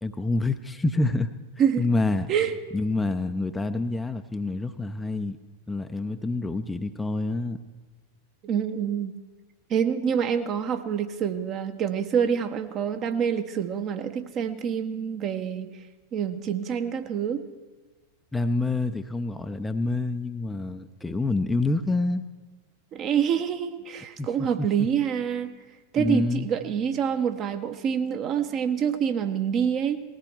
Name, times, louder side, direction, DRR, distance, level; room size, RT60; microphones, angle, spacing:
voice 1, 0.0-1.3 1.8-2.3 2.7-5.4 5.7-7.6 18.3-22.2 24.2-24.9 26.0-26.5, left 2 dB, 10° left, 7 dB, 0.6 m, -27 dB
voice 2, 8.4-9.1 9.7-15.7 16.1-17.5 22.9-25.6 25.9-30.0, right 8 dB, 35° right, 8 dB, 1.0 m, -26 dB
19.5 x 14.5 x 4.6 m, 1.3 s
figure-of-eight pair, 90°, 0 cm